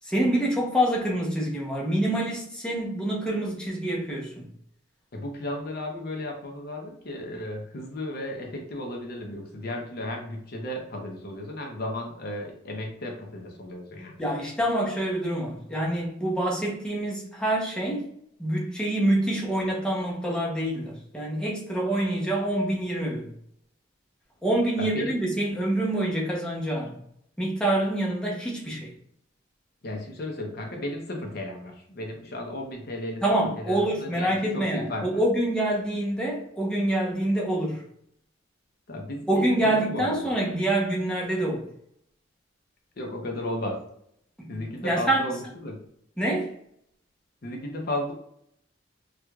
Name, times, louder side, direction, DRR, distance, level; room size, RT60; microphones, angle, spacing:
voice 1, 0.0-4.5 14.2-18.1 18.4-23.3 24.4-27.0 27.4-28.9 33.2-37.8 39.3-41.7 44.4-44.6 44.8-45.3 46.2-46.5, right 1 dB, 5° left, 0.7 m, -26 dB
voice 2, 5.1-14.2 24.8-25.2 29.8-33.2 33.6-35.2 38.9-40.2 43.0-43.8 44.5-45.8 47.4-48.1, left 1 dB, 55° left, 0.7 m, -34 dB
4.5 x 2.4 x 2.3 m
head